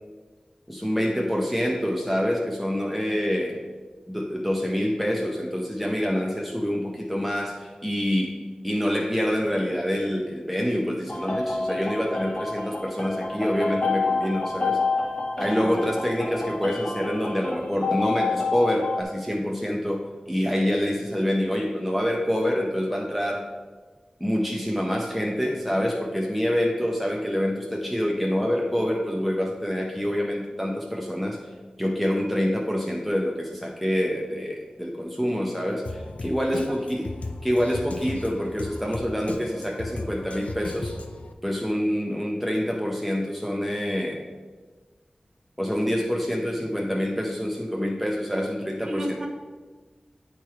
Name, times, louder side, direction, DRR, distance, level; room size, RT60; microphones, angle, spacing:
voice 1, 0.7-3.7 4.1-8.4 8.6-14.8 15.4-23.5 24.2-31.4 31.8-37.1 37.4-41.0 41.4-44.3 45.6-49.3, equal, ahead, -1 dB, 0.7 m, -26 dB
sound 1, 11.1-19.0, left 3 dB, 50° left, 0.9 m, -28 dB
voice 2, 15.4-15.7 36.5-36.7 48.9-49.3, right 1 dB, 30° right, 1 dB, 1.1 m, -32 dB
Drum kit, 35.8-41.3, left 2 dB, 70° left, 0.5 m, -36 dB
8.5 x 3.1 x 4.7 m, 1.4 s
wide cardioid pair, 80°, 2 cm